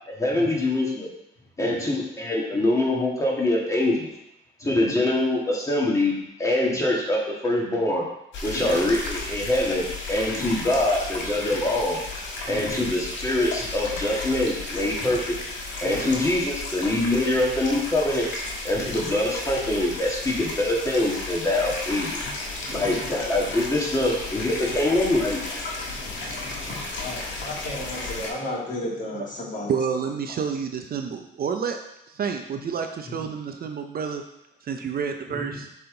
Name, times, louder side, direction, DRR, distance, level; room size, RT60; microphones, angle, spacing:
voice 1, 0.2-1.1 1.6-4.1 4.6-6.1 6.4-8.0 8.4-12.0 12.5-15.4 15.8-18.3 18.6-22.1 22.7-25.4, left 1 dB, 15° left, -3 dB, 1.7 m, -24 dB
voice 2, 1.6-2.0 2.5-2.6 4.6-5.0 6.6-6.8 8.5-8.9 10.3-10.5 12.5-12.9 15.0-15.2 15.8-16.2 18.7-19.1 22.2-22.3 22.6-23.2 24.6-24.7 25.9-29.7 33.0-33.2 35.3-35.6, left 1 dB, 40° left, -4 dB, 2.0 m, -35 dB
sound 1, 8.3-28.3, left 2 dB, 70° left, 1.5 m, -33 dB
voice 3, 29.7-31.8 32.1-34.2 34.6-35.7, right 6 dB, 50° right, 6 dB, 0.5 m, -29 dB
6.9 x 3.5 x 3.8 m, 0.84 s
cardioid pair, 90°, 20 cm